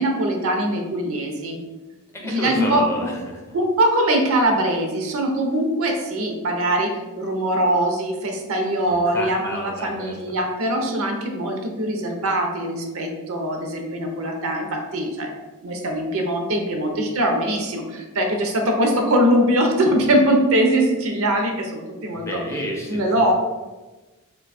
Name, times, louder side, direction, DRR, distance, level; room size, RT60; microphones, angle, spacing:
voice 1, 0.0-1.6 2.2-3.1 3.5-15.3 15.6-22.4 22.9-23.3, right 1 dB, 65° right, 3 dB, 0.6 m, -22 dB
voice 2, 2.1-3.4 8.9-10.2 22.1-23.3, equal, 10° left, -1 dB, 0.4 m, -31 dB
2.6 x 2.3 x 4.0 m, 1.2 s
head